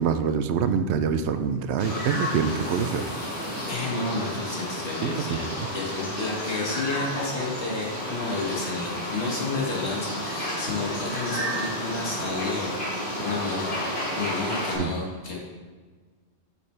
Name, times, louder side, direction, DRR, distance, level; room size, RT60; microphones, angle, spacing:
voice 1, 0.0-3.0 5.0-5.6 14.8-14.9, right 7 dB, 80° right, 10 dB, 0.9 m, -25 dB
sound 1, 1.8-14.8, left 1 dB, 50° left, 2.7 m, -31 dB
voice 2, 3.7-12.7 13.2-13.8 14.2-15.4, left 3 dB, 80° left, -2 dB, 1.9 m, -31 dB
9.4 x 6.5 x 3.3 m, 1.4 s
omnidirectional pair, 1.1 m